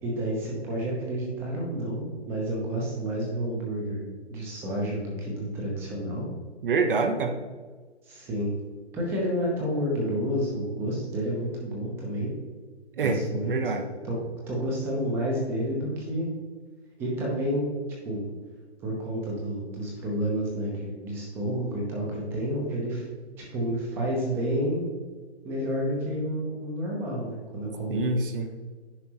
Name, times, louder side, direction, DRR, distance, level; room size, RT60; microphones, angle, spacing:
voice 1, 0.0-6.3 8.1-8.5 8.9-12.3 13.0-13.5 14.0-14.2 14.5-16.3 17.0-17.6 18.0-18.2 18.8-23.0 23.5-24.9 25.4-28.2, equal, 5° right, -2 dB, 0.7 m, -30 dB
voice 2, 6.6-7.3 13.0-13.9 27.9-28.5, right 4 dB, 50° right, 6 dB, 0.8 m, -26 dB
9.8 x 5.1 x 3.0 m, 1.4 s
hypercardioid pair, 160°, 34 cm